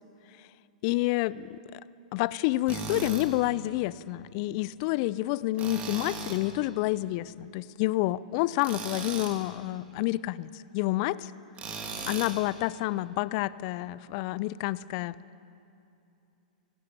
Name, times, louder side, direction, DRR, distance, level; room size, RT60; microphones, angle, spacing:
voice 1, 0.8-1.8 2.1-11.3 12.1-15.2, left 17 dB, 50° left, 19 dB, 0.6 m, -29 dB
Tools, 2.7-3.3 5.6-6.4 8.6-9.4 11.6-12.4, right 4 dB, 30° right, 2.8 m, -37 dB
18.5 x 16.0 x 8.7 m, 2.8 s
hypercardioid pair, 110°, 4 cm